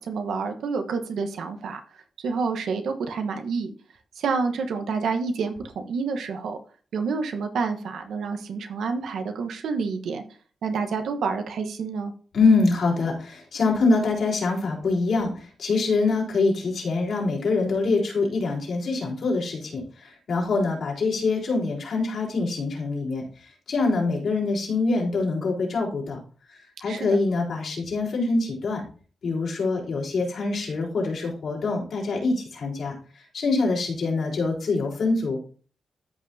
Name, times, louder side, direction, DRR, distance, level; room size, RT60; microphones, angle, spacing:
voice 1, 0.0-1.8 2.2-3.7 4.2-6.6 6.9-10.2 10.6-12.1 26.9-27.2, right 5 dB, 80° right, 6 dB, 1.1 m, -28 dB
voice 2, 12.3-23.2 23.7-26.2 26.8-28.8 29.2-33.0 33.3-35.4, left 3 dB, 60° left, -3 dB, 4.0 m, -24 dB
13.5 x 5.5 x 2.7 m, 0.41 s
wide cardioid pair, 120°, 0 cm